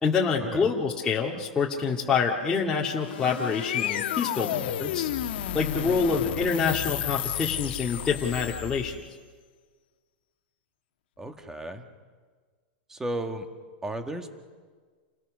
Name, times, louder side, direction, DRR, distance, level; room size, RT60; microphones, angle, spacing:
voice 1, 0.0-5.1 5.5-9.0, left 5 dB, 10° left, -5 dB, 2.1 m, -26 dB
sound 1, 2.7-9.1, left 11 dB, 70° left, 1.6 m, -32 dB
voice 2, 11.2-11.9 12.9-13.5 13.8-14.3, right 1 dB, 10° right, 6 dB, 1.8 m, -34 dB
29.0 x 20.5 x 6.5 m, 1.5 s
supercardioid pair, 150°, 6 cm